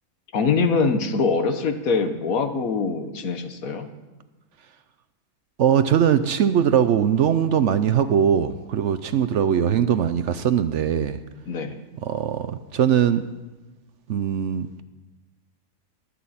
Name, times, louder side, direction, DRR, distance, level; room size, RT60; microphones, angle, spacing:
voice 1, 0.3-3.9 11.5-11.7, left 4 dB, 70° left, 8 dB, 1.5 m, -23 dB
voice 2, 5.6-11.2 12.0-13.2 14.1-14.8, right 8 dB, 65° right, 11 dB, 0.8 m, -21 dB
22.5 x 8.8 x 4.2 m, 1.1 s
omnidirectional pair, 1.5 m